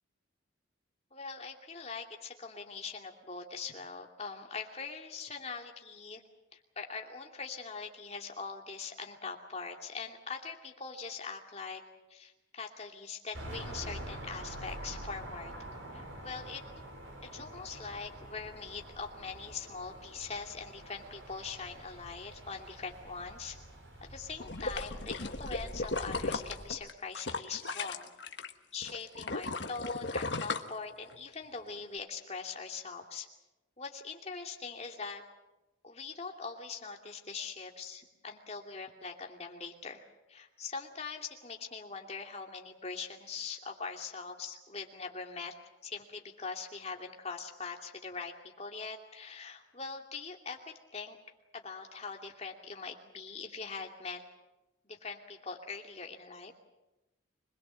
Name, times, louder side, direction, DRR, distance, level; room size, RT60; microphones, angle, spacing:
voice 1, 1.1-6.2 6.5-11.8 12.1-15.5 15.9-16.6 17.3-23.6 24.1-28.1 28.7-33.3 33.8-35.2 35.8-40.0 40.3-45.6 45.8-51.2 51.5-54.2 54.9-56.5, left 4 dB, 35° left, 2 dB, 2.7 m, -42 dB
sound 1, 13.3-26.7, right 1 dB, 75° right, 5.0 m, -46 dB
sound 2, 24.4-28.5 28.8-31.3 31.8-31.9, left 3 dB, 60° left, 1.4 m, -36 dB
25.5 x 21.0 x 7.6 m, 1.0 s
head